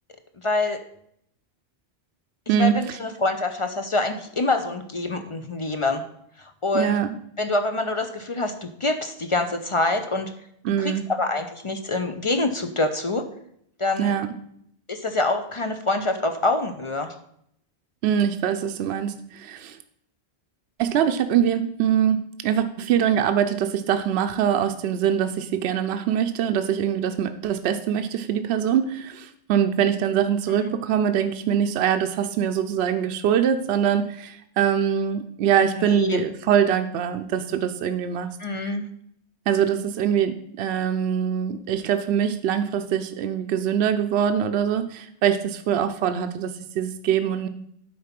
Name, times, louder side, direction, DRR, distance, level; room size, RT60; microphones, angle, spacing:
voice 1, 0.4-0.8 2.6-6.0 6.4-7.0 7.4-10.3 10.8-13.3 13.8-14.1 14.9-17.1 30.5-30.8 35.8-36.2 38.4-38.9, left 2 dB, 40° left, 6 dB, 0.5 m, -26 dB
voice 2, 6.7-7.2 10.6-11.1 14.0-14.3 18.0-19.8 20.8-38.3 38.6-38.7 39.5-47.5, right 9 dB, 75° right, 8 dB, 0.8 m, -23 dB
9.4 x 4.0 x 5.8 m, 0.71 s
omnidirectional pair, 1.1 m